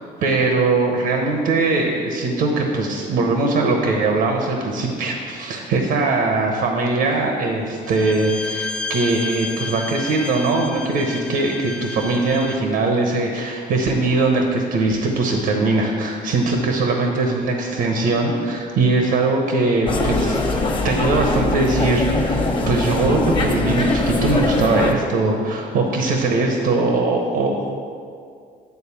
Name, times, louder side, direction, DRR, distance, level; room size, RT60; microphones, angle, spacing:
voice 1, 0.2-20.6 20.8-27.7, right 3 dB, 75° right, 2 dB, 1.0 m, -21 dB
Bowed string instrument, 7.8-12.7, left 3 dB, 5° left, 0.4 m, -31 dB
sound 1, 19.9-24.9, left 2 dB, 30° left, 1.1 m, -22 dB
9.4 x 4.1 x 7.0 m, 2.3 s
cardioid pair, 110°, 17 cm